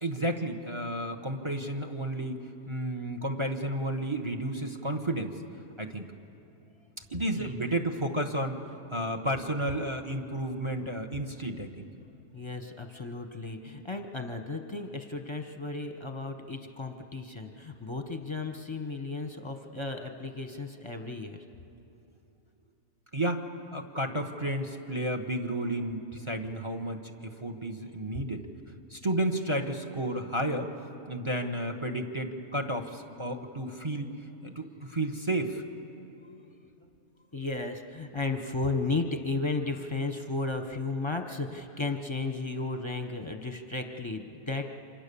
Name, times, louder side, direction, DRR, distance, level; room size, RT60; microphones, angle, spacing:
voice 1, 0.0-2.4 2.7-5.4 5.8-6.1 7.1-11.9 23.1-23.4 23.7-28.5 28.9-30.7 31.1-34.2 34.4-35.6, right 1 dB, 20° right, 5 dB, 1.0 m, -32 dB
voice 2, 12.3-21.4 37.3-44.7, left 3 dB, 20° left, 5 dB, 1.0 m, -34 dB
29.0 x 26.0 x 7.0 m, 2.9 s
omnidirectional pair, 1.7 m